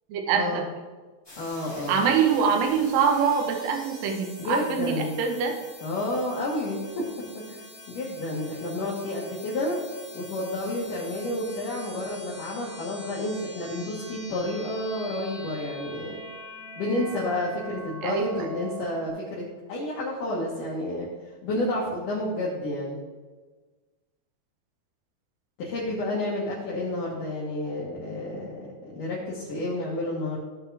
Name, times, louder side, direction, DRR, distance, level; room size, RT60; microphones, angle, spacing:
voice 1, 0.1-0.6 1.9-5.6 18.0-18.2, right 6 dB, 75° right, 3 dB, 2.6 m, -24 dB
sound 1, 1.2-19.1, equal, 25° left, 0.6 m, -44 dB
voice 2, 1.4-2.0 4.4-5.1 5.8-7.0 7.3-9.8 10.1-16.2 16.8-19.4 19.7-21.1 21.4-23.0 25.6-30.4, left 1 dB, 65° left, -6 dB, 2.8 m, -30 dB
16.0 x 5.6 x 3.4 m, 1.3 s
omnidirectional pair, 4.3 m